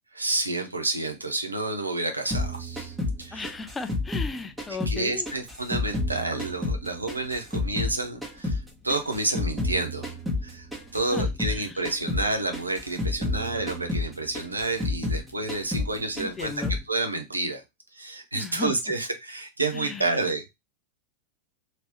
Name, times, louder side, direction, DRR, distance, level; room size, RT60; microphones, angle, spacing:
voice 1, 0.1-3.5 4.9-10.1 10.4-10.7 10.9-17.6 17.9-20.5, right 2 dB, 80° right, 0.6 m, -29 dB
sound 1, 2.3-5.0 5.3-8.0 8.2-11.6 11.8-12.3 12.5-15.2 15.5-15.9 16.2-16.8, left 2 dB, 10° right, 1.2 m, -30 dB
voice 2, 3.3-5.3 11.1-11.9 16.2-16.7 18.3-18.7 19.7-20.2, left 4 dB, 15° left, 0.4 m, -36 dB
2.9 x 2.9 x 2.9 m
figure-of-eight pair, 90°, 0 cm